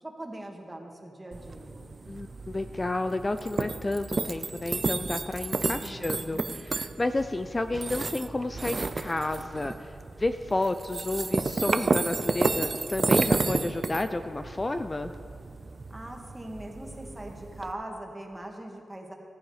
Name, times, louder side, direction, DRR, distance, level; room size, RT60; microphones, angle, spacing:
voice 1, 0.0-1.9 5.8-6.5 15.9-19.1, right 1 dB, 15° right, 1 dB, 1.9 m, -41 dB
sound 1, 1.3-17.7, right 3 dB, 45° right, 0.5 m, -31 dB
voice 2, 2.1-15.1, left 2 dB, 30° left, 9 dB, 0.4 m, -31 dB
14.0 x 10.0 x 4.9 m, 2.7 s
cardioid pair, 55°, 0 cm